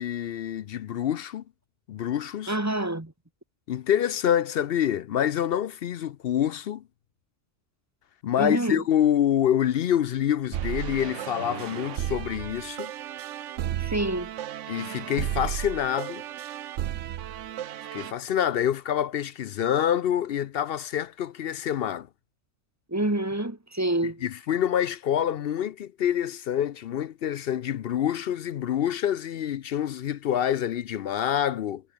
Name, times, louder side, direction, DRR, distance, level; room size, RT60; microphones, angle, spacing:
voice 1, 0.0-1.4 1.9-2.5 3.7-6.8 8.2-12.9 14.7-16.2 17.9-22.1 24.0-31.8, left 10 dB, 60° left, 0.7 m, -26 dB
voice 2, 2.5-3.1 8.4-8.8 13.8-14.3 22.9-24.2, right 1 dB, 15° right, 1.4 m, -27 dB
sound 1, 10.5-18.1, right 11 dB, 75° right, 1.0 m, -34 dB
omnidirectional pair, 1.3 m